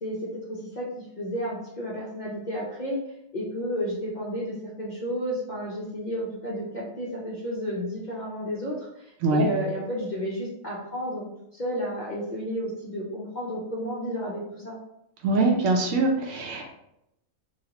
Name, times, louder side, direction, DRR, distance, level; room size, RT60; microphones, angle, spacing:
voice 1, 0.0-3.0 3.3-14.8, equal, 50° left, -5 dB, 0.5 m, -32 dB
voice 2, 15.2-16.7, right 2 dB, 70° right, 0 dB, 0.9 m, -23 dB
3.1 x 2.8 x 2.8 m, 0.83 s
omnidirectional pair, 1.6 m